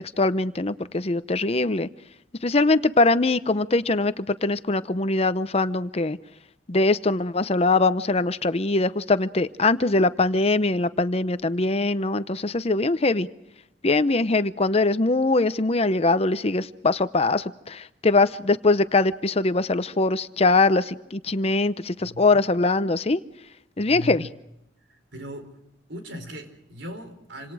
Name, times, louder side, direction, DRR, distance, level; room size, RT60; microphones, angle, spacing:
voice 1, 0.0-1.9 2.4-6.2 6.7-13.3 13.8-23.2 23.8-24.2, left 3 dB, 35° left, 13 dB, 0.7 m, -22 dB
voice 2, 22.0-22.4 23.8-24.3 25.1-25.5 25.9-27.5, equal, 80° right, 7 dB, 4.5 m, -38 dB
28.0 x 26.0 x 4.9 m, 0.85 s
head